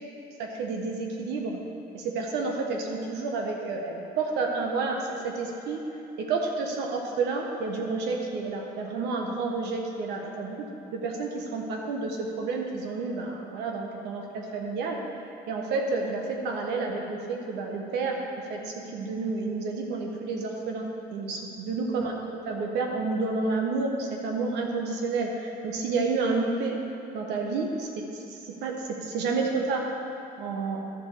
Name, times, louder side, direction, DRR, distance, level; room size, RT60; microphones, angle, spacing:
voice 1, 0.4-1.6 1.9-5.8 6.2-15.0 15.5-18.2 18.5-26.8 27.1-28.1 28.4-29.9 30.4-30.8, right 3 dB, 85° right, 1 dB, 1.3 m, -30 dB
12.5 x 4.3 x 6.6 m, 2.9 s
cardioid pair, 110°, 17 cm